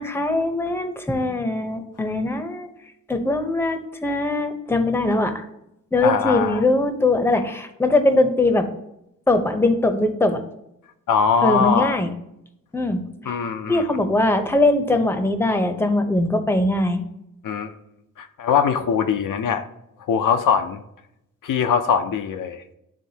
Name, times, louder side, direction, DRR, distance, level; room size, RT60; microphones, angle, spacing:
voice 1, 0.0-2.7 3.1-5.4 5.9-8.7 9.3-10.4 11.4-12.1 12.7-13.4 13.7-17.0, left 2 dB, 5° left, 7 dB, 0.7 m, -21 dB
voice 2, 6.0-6.6 11.1-12.0 13.3-14.0 17.4-17.7 18.2-19.6 20.1-20.8 21.4-22.6, left 6 dB, 80° left, 7 dB, 0.6 m, -21 dB
10.0 x 3.6 x 2.8 m, 0.82 s
cardioid pair, 90°, 32 cm